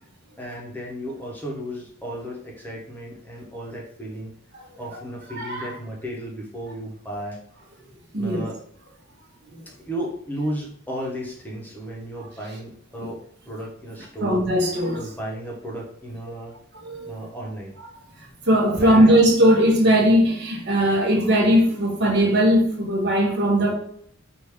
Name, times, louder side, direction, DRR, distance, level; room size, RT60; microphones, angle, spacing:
voice 1, 0.4-4.3 4.8-7.4 8.1-8.6 9.7-13.2 13.5-14.4 14.9-16.6 17.1-17.8 18.8-19.3, equal, 10° left, 0.9 m, -34 dB
voice 2, 5.3-5.7 8.1-8.4 9.5-9.6 13.0-13.1 14.2-15.1 16.8-17.1 18.5-23.7, equal, 50° right, 1.1 m, -19 dB
4.9 x 2.6 x 3.5 m
head